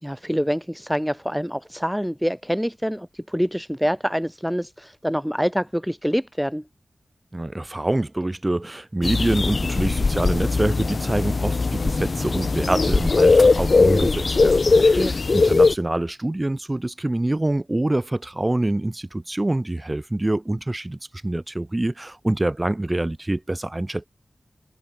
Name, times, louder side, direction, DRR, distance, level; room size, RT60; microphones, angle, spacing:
voice 1, 0.0-6.6 14.7-15.1, equal, ahead, 2.5 m, -26 dB
voice 2, 7.3-24.1, right 1 dB, 25° right, 3.5 m, -25 dB
sound 1, 9.0-15.7, left 3 dB, 60° left, 3.3 m, -19 dB
wide cardioid pair, 80°, 0 cm